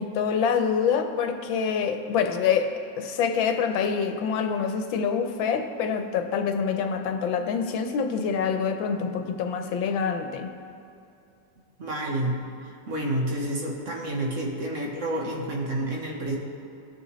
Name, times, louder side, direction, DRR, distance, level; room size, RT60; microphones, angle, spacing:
voice 1, 0.0-10.5, left 6 dB, 85° left, 6 dB, 1.5 m, -26 dB
voice 2, 11.8-12.4 12.9-16.4, right 1 dB, 45° right, -1 dB, 1.3 m, -29 dB
17.5 x 6.5 x 3.1 m, 2.7 s
omnidirectional pair, 2.1 m